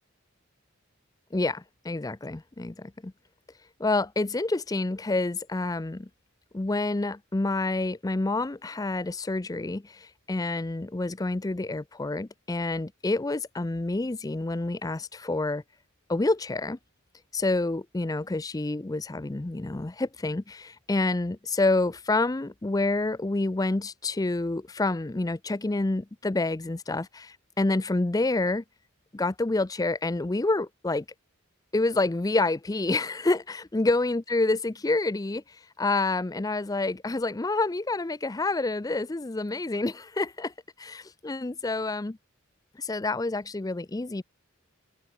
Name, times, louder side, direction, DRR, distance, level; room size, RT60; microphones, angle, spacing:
voice 1, 1.3-3.1 3.8-6.1 6.5-15.6 16.1-16.8 17.3-28.6 29.1-31.0 31.7-42.2 42.8-44.2, left 2 dB, 15° left, 0.5 m, -28 dB
head